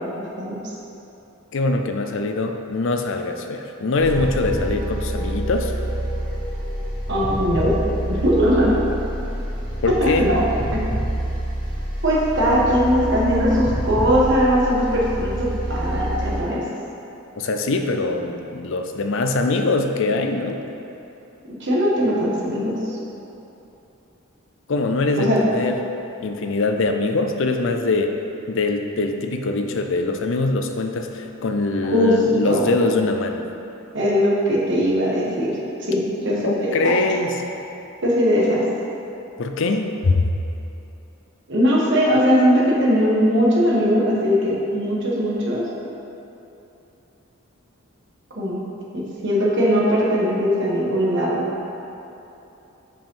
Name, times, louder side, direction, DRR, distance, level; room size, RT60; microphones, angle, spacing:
voice 1, 1.5-5.7 9.8-10.3 17.4-20.6 24.7-25.8 26.2-28.1 28.5-33.4 36.4-37.4 39.4-40.3, left 3 dB, 60° left, 5 dB, 0.5 m, -22 dB
sound 1, 3.9-16.4, right 1 dB, 20° left, 1.1 m, -27 dB
voice 2, 7.1-7.7 8.1-8.7 10.0-10.4 10.7-10.8 12.0-16.6 21.6-23.0 25.2-25.4 31.8-32.2 32.4-32.7 33.9-35.5 35.9-37.0 38.0-38.6 41.5-45.6 48.3-48.6 48.9-51.5, equal, 55° right, -5 dB, 1.4 m, -20 dB
5.3 x 5.3 x 5.4 m, 3.0 s
head